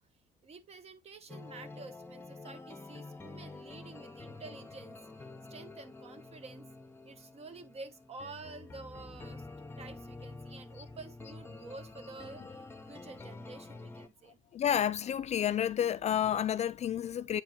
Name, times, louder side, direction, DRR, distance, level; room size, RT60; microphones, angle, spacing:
voice 1, 0.4-5.0 5.5-6.7 7.0-9.5 9.8-14.4, right 3 dB, 40° right, 1.0 m, -49 dB
sound 1, 1.3-14.1, left 3 dB, 15° left, 0.8 m, -48 dB
voice 2, 14.5-17.4, left 10 dB, 40° left, 0.4 m, -30 dB
8.2 x 4.4 x 2.9 m
cardioid pair, 110°, 17 cm